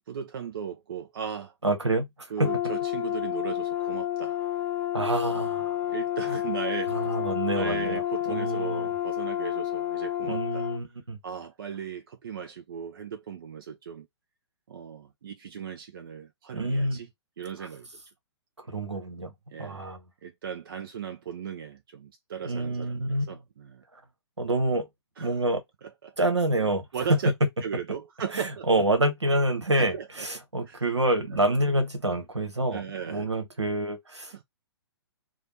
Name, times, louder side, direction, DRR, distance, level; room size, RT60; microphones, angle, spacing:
voice 1, 0.1-1.5 2.3-4.4 5.9-7.1 7.5-10.7 11.2-14.1 14.7-17.1 17.4-17.9 19.5-19.9 20.2-23.8 25.2-25.4 26.0-26.1 26.9-27.3 27.6-28.8 29.8-30.3 30.7-30.8 31.3-31.4 32.7-33.3 34.3-34.4, right 7 dB, 50° right, 0.5 m, -37 dB
voice 2, 1.6-2.3 4.9-5.8 6.3-6.4 6.9-8.9 10.2-11.2 16.5-17.0 17.6-17.7 18.7-19.3 19.6-20.0 22.4-23.4 24.4-24.9 25.2-25.6 26.2-26.8 28.3-34.3, right 1 dB, 80° right, 1.2 m, -27 dB
Brass instrument, 2.4-10.8, left 13 dB, 15° left, 0.7 m, -30 dB
3.2 x 2.3 x 4.1 m
figure-of-eight pair, 120°, 14 cm